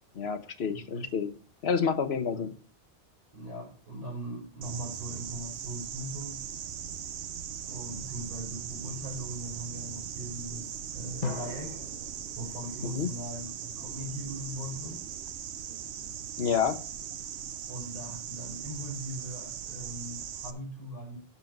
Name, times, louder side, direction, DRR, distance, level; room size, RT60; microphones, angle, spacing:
voice 1, 0.1-1.3 1.6-2.5 12.8-13.1 16.4-16.8, left 6 dB, 70° left, 11 dB, 1.2 m, -29 dB
voice 2, 0.7-1.1 2.3-2.5 3.3-6.4 7.7-11.8 12.3-15.0 17.7-21.2, right 1 dB, 35° right, -2 dB, 4.2 m, -40 dB
sound 1, 4.6-20.5, right 9 dB, 85° right, 1.0 m, -39 dB
sound 2, 11.2-14.0, left 5 dB, 45° left, 0.9 m, -41 dB
12.0 x 4.5 x 5.2 m, 0.39 s
omnidirectional pair, 1.1 m